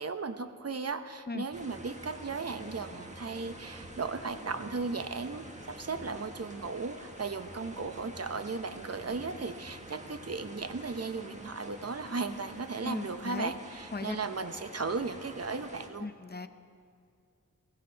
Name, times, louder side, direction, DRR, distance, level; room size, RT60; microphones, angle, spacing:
voice 1, 0.0-16.1, right 4 dB, 45° right, 10 dB, 0.8 m, -36 dB
sound 1, 1.5-15.9, right 1 dB, 20° right, 1.5 m, -47 dB
voice 2, 12.8-13.5 13.9-14.2 16.0-16.5, left 3 dB, 30° left, 9 dB, 0.7 m, -37 dB
16.0 x 15.0 x 4.6 m, 2.3 s
wide cardioid pair, 55°, 34 cm